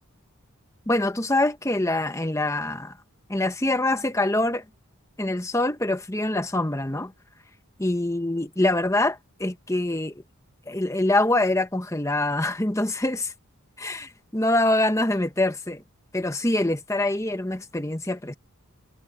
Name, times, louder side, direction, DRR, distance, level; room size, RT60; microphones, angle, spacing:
voice 1, 0.9-2.9 3.3-4.6 5.2-7.1 7.8-10.1 10.7-13.3 13.8-15.8 16.1-18.3, left 1 dB, 15° left, 1.1 m, -24 dB
head